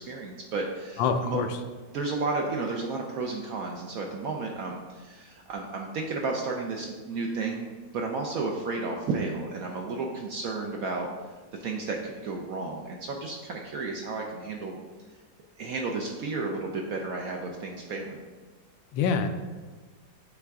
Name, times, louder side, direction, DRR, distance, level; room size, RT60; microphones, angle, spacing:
voice 1, 0.1-1.4 1.9-11.1 11.6-14.8 15.6-18.2, right 3 dB, 70° right, 1 dB, 0.8 m, -32 dB
voice 2, 1.0-1.6 18.9-19.3, left 5 dB, 85° left, 7 dB, 1.3 m, -25 dB
8.6 x 3.4 x 3.6 m, 1.3 s
omnidirectional pair, 2.0 m